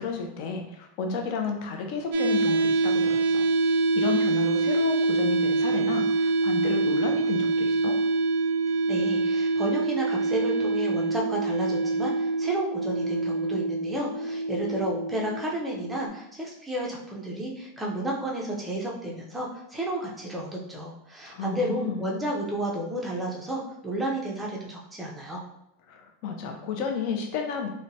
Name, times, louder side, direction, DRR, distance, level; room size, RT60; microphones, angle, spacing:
voice 1, 0.0-3.4 3.9-8.0 21.3-22.1 25.9-27.7, left 5 dB, 45° left, 3 dB, 0.5 m, -32 dB
sound 1, 2.1-16.1, right 3 dB, 60° right, 0.3 m, -25 dB
voice 2, 8.9-25.4, right 1 dB, 5° right, -3 dB, 0.5 m, -32 dB
2.8 x 2.1 x 2.7 m, 0.80 s
supercardioid pair, 160°, 0 cm